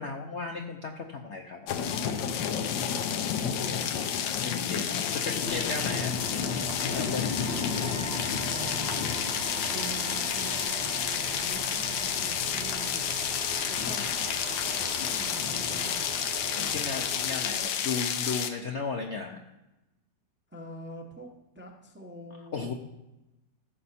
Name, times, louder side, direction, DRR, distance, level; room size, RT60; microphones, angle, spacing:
voice 1, 0.0-1.7 4.4-6.1 6.9-7.4 16.5-19.4 22.5-22.7, left 4 dB, 60° left, 2 dB, 0.7 m, -35 dB
sound 1, 1.7-18.5, left 8 dB, 90° left, 1.4 m, -30 dB
voice 2, 3.3-4.0 4.7-4.8 5.2-5.4 7.5-9.2 9.7-13.0 13.7-14.1 14.8-16.1 16.5-16.7 20.5-22.6, right 1 dB, 10° right, 1 dB, 0.6 m, -44 dB
sound 2, 5.4-17.6, right 5 dB, 50° right, 0.8 m, -40 dB
15.0 x 5.4 x 4.2 m, 0.98 s
omnidirectional pair, 1.9 m